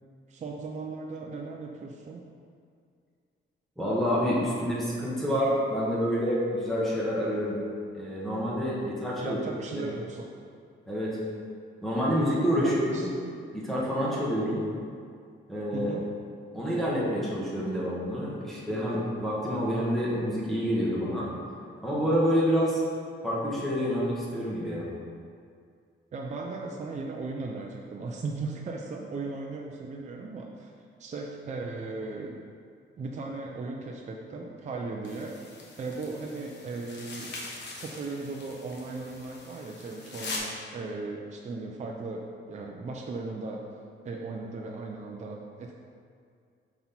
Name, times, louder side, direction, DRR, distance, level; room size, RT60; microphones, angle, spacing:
voice 1, 0.3-2.2 9.2-10.4 12.6-13.1 15.7-16.1 26.1-30.7 31.0-32.4 33.0-35.4 35.8-37.3 37.8-43.6 44.0-45.7, right 3 dB, 35° right, 0 dB, 0.5 m, -37 dB
voice 2, 3.8-7.6 7.9-9.4 9.7-9.8 10.9-11.2 11.8-13.1 13.5-14.6 15.5-15.9 16.5-21.3 21.8-22.8 23.2-24.9, equal, ahead, -7 dB, 1.3 m, -28 dB
sound 1, 35.0-40.4, left 3 dB, 60° left, 1.2 m, -43 dB
6.1 x 5.4 x 4.3 m, 2.2 s
wide cardioid pair, 150°, 20 cm